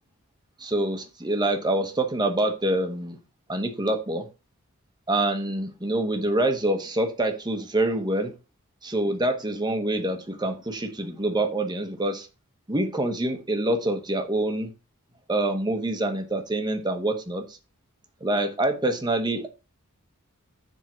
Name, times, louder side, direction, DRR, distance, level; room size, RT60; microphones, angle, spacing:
voice 1, 0.6-3.2 3.5-4.2 5.1-8.3 8.8-12.3 12.7-14.7 15.3-17.4 18.2-19.5, right 1 dB, 20° right, 6 dB, 1.1 m, -26 dB
7.4 x 3.7 x 6.0 m, 0.31 s
head